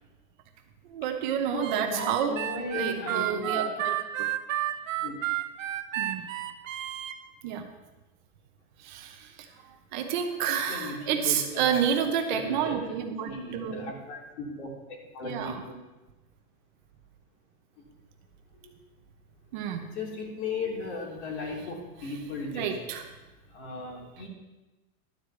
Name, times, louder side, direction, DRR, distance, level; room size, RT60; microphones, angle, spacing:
voice 1, 0.8-2.4 2.7-4.3 6.0-6.3 7.4-7.6 8.8-9.5 9.9-13.8 15.2-15.6 19.5-19.8 22.0-22.1 22.5-23.1, right 8 dB, 35° right, 4 dB, 0.9 m, -30 dB
voice 2, 1.5-3.9 5.0-5.2 10.7-11.9 12.3-12.9 13.3-15.6 18.6-18.7 19.8-22.7 23.5-24.3, left 3 dB, 55° left, -1 dB, 3.0 m, -36 dB
Harmonica, 1.6-7.1, right 13 dB, 70° right, 1.0 m, -31 dB
12.0 x 4.8 x 8.1 m, 1.1 s
supercardioid pair, 160°, 40 cm